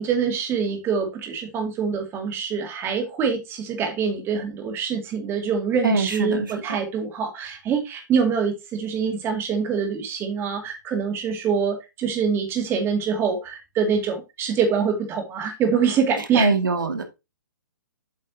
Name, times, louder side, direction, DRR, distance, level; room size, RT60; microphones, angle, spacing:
voice 1, 0.0-16.5, right 6 dB, 20° right, 2.2 m, -25 dB
voice 2, 5.8-6.8 16.2-17.0, right 4 dB, 85° right, 2.1 m, -23 dB
8.2 x 6.5 x 2.8 m
hypercardioid pair, 135°, 10 cm